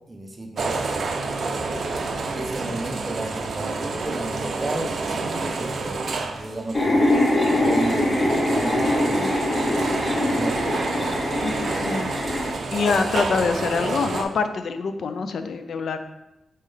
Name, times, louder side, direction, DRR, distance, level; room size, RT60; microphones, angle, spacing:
voice 1, 0.1-1.8 2.3-6.0 6.3-9.5 10.2-10.7, right 1 dB, 25° right, 2 dB, 0.7 m, -33 dB
sound 1, 0.6-14.2, right 3 dB, 60° right, 0.4 m, -29 dB
sound 2, 6.7-12.5, left 1 dB, 35° left, 1.0 m, -23 dB
voice 2, 11.4-12.1 12.7-16.0, left 5 dB, 70° left, 9 dB, 0.4 m, -25 dB
4.1 x 3.7 x 3.3 m, 0.93 s
wide cardioid pair, 105°, 0 cm